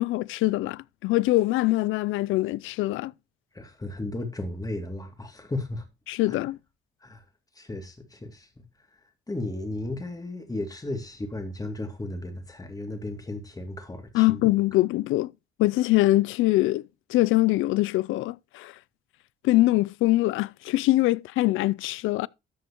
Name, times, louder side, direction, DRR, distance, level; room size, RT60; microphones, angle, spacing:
voice 1, 0.0-3.1 6.1-6.6 14.1-15.3 15.6-16.8 17.1-18.7 19.4-22.3, left 18 dB, 85° left, 0.4 m, -23 dB
voice 2, 3.5-5.8 6.3-6.4 7.0-7.2 7.6-8.6 9.3-14.4, left 2 dB, 20° left, 2.5 m, -34 dB
13.0 x 7.7 x 3.0 m
cardioid pair, 90°, 20 cm